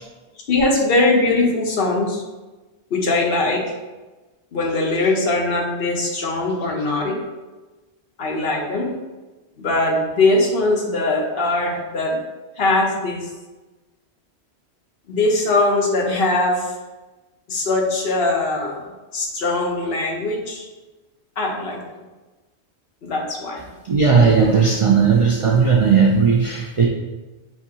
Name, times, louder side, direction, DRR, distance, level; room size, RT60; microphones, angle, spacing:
voice 1, 0.5-2.2 2.9-3.7 4.5-7.2 8.2-8.9 9.6-12.2 12.6-13.3 15.1-16.7 17.5-18.8 19.1-20.6 21.4-21.8 23.0-23.6, left 2 dB, 65° left, 0 dB, 1.0 m, -21 dB
voice 2, 23.8-26.9, right 5 dB, 60° right, -1 dB, 0.3 m, -16 dB
5.8 x 2.7 x 2.8 m, 1.2 s
omnidirectional pair, 1.1 m